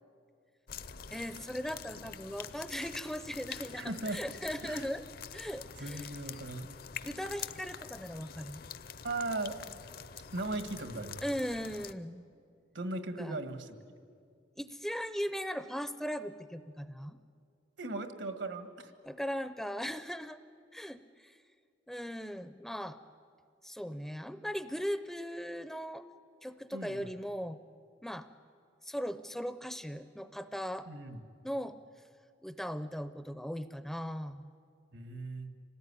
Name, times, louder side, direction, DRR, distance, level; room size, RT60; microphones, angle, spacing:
sound 1, 0.7-11.9, left 7 dB, 50° left, 0.7 m, -46 dB
voice 1, 1.1-5.0 5.3-6.1 7.0-8.6 11.2-12.3 13.2-13.4 14.6-17.2 19.0-20.4 20.7-21.4 21.9-23.0 23.6-26.0 26.4-27.6 28.0-28.3 28.8-30.9 31.4-31.8 32.4-34.5, equal, ahead, 11 dB, 0.5 m, -38 dB
voice 2, 3.7-4.2 4.6-4.9 5.8-6.7 9.0-9.6 10.3-11.2 12.7-13.8 17.8-18.9 26.7-27.1 30.9-31.2 34.9-35.5, right 2 dB, 75° right, 8 dB, 1.7 m, -38 dB
26.0 x 18.5 x 9.8 m, 2.2 s
head